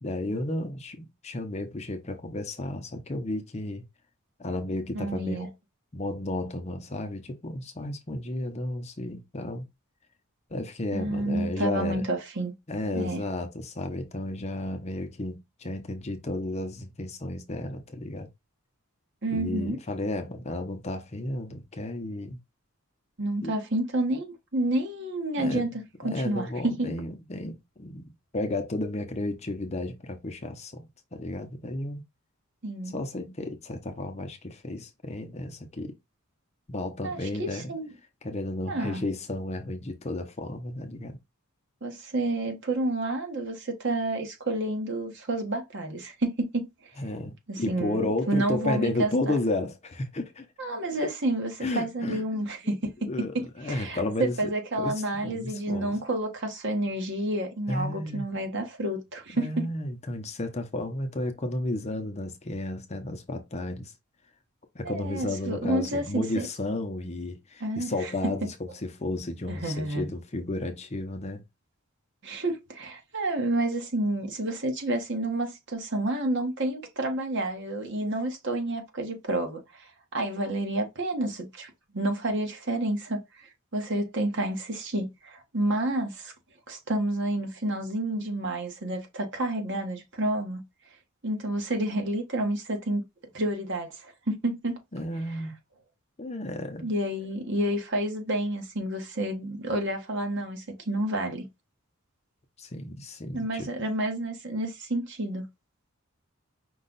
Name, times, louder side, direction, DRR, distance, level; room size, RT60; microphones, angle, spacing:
voice 1, 0.0-3.8 4.4-5.5 5.9-9.6 10.5-12.1 12.7-18.3 19.3-22.4 23.4-23.5 25.4-25.7 26.0-32.0 32.9-35.9 36.7-37.7 38.2-41.2 47.0-50.5 51.0-51.1 51.6-52.2 52.6-52.7 53.0-54.5 54.8-56.0 57.7-58.3 59.3-63.9 64.7-71.4 94.9-95.5 96.2-96.9 102.6-103.7, left 2 dB, 30° left, 0.7 m, -33 dB
voice 2, 4.9-5.5 10.9-12.5 12.9-13.2 19.2-19.8 23.2-26.9 32.6-32.9 37.0-37.9 38.7-39.0 41.8-46.7 47.5-49.4 50.6-53.1 53.6-59.7 64.8-66.5 67.6-68.1 69.5-70.1 72.2-86.3 86.7-90.6 91.2-93.0 93.3-94.8 96.8-101.4 103.3-105.4, right 1 dB, 55° right, 1.3 m, -30 dB
5.3 x 2.3 x 3.9 m
head